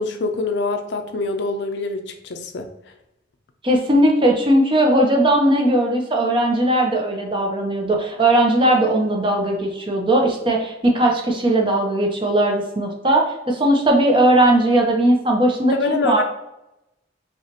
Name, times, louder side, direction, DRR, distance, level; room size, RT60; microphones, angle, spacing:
voice 1, 0.0-2.7 15.7-16.2, left 3 dB, 65° left, 6 dB, 0.5 m, -25 dB
voice 2, 3.6-16.2, right 1 dB, 25° right, 1 dB, 0.7 m, -18 dB
5.8 x 2.4 x 2.8 m, 0.87 s
head